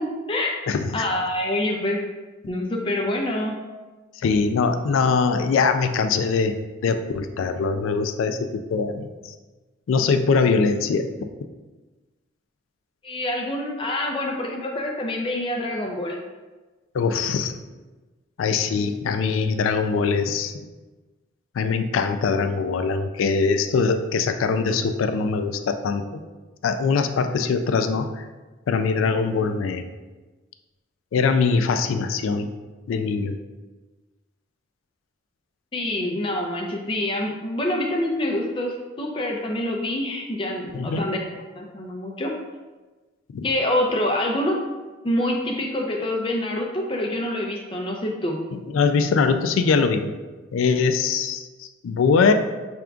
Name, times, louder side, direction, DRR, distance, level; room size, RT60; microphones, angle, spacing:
voice 1, 0.0-0.5 0.9-2.0 2.5-3.5 13.0-16.2 35.7-41.2 41.6-42.3 43.4-44.6 45.0-48.4, left 1 dB, 25° left, 0 dB, 0.4 m, -26 dB
voice 2, 4.2-9.1 9.9-11.1 16.9-17.5 18.4-20.5 21.6-26.2 26.6-28.2 28.7-29.8 31.1-32.5 32.9-33.4 40.7-41.1 43.3-43.5 48.5-50.1 50.5-52.3, left 5 dB, 90° left, 8 dB, 0.3 m, -22 dB
5.0 x 3.4 x 2.3 m, 1.2 s
head